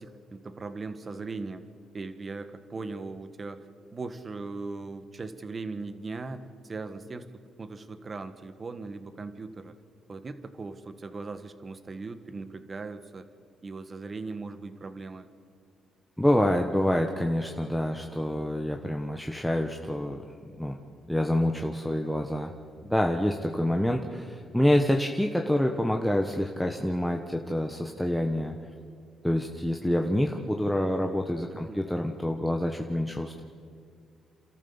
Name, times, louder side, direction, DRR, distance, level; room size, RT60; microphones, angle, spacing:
voice 1, 0.0-1.6 1.9-7.3 7.6-9.7 10.1-13.3 13.6-15.3 31.5-31.8, right 3 dB, 35° right, 11 dB, 1.5 m, -39 dB
voice 2, 16.2-20.2 20.6-20.8 21.1-22.5 22.8-28.5 29.2-33.4, left 1 dB, 5° left, 2 dB, 1.3 m, -27 dB
28.5 x 13.5 x 7.1 m, 2.3 s
cardioid pair, 90°, 0 cm